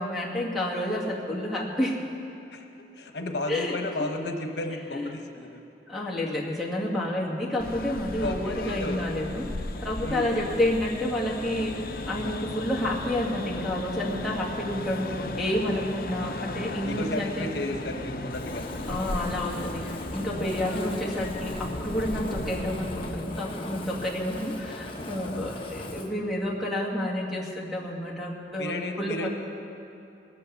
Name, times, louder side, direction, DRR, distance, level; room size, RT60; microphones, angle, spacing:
voice 1, 0.0-2.0 3.5-3.8 4.9-5.1 5.9-9.5 9.8-17.5 18.9-29.3, left 1 dB, ahead, -4 dB, 2.0 m, -29 dB
voice 2, 2.9-5.6 8.2-9.0 10.0-10.3 16.8-18.6 20.6-20.9 25.3-25.6 28.6-29.3, left 2 dB, 80° left, 4 dB, 1.0 m, -33 dB
sounds at subway station, 7.6-23.2, left 2 dB, 55° left, 0.7 m, -36 dB
Fire, 18.3-26.1, left 1 dB, 30° left, 1.0 m, -39 dB
sound 1, 20.7-25.1, left 1 dB, 40° right, 4.0 m, -43 dB
19.5 x 8.6 x 7.0 m, 2.7 s
head